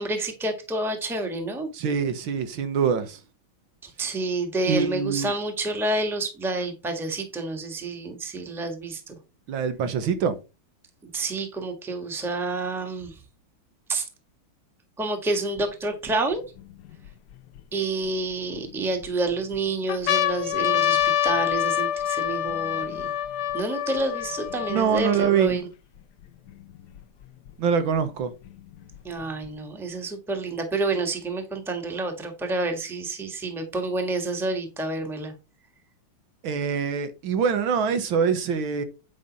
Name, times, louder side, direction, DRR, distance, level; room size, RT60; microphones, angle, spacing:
voice 1, 0.0-1.7 3.8-9.2 11.1-13.1 13.9-14.0 15.0-16.4 17.7-23.1 23.5-25.6 29.0-35.3, right 2 dB, ahead, 1.3 m, -29 dB
voice 2, 1.7-3.2 4.7-5.3 9.5-10.4 24.7-25.6 27.6-28.3 36.4-38.8, right 6 dB, 70° right, 1.9 m, -24 dB
sound 1, 15.6-15.7 16.3-17.6 18.3-19.1 19.5-19.6 19.9-25.5 26.2-26.3 26.5-27.5 28.4-29.5, left 11 dB, 65° left, 1.1 m, -26 dB
9.2 x 5.4 x 4.1 m
omnidirectional pair, 2.3 m